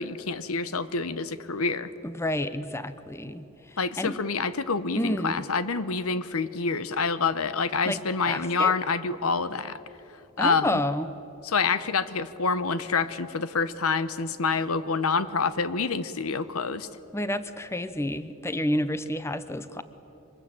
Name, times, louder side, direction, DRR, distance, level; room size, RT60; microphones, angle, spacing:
voice 1, 0.0-1.9 3.8-9.8 10.4-10.8 11.4-16.9, left 4 dB, 80° left, 14 dB, 1.0 m, -27 dB
voice 2, 2.0-4.1 5.0-5.4 7.9-8.0 8.2-8.7 10.4-11.1 17.1-19.8, left 1 dB, 10° left, 12 dB, 0.7 m, -30 dB
24.5 x 20.5 x 8.9 m, 3.0 s
head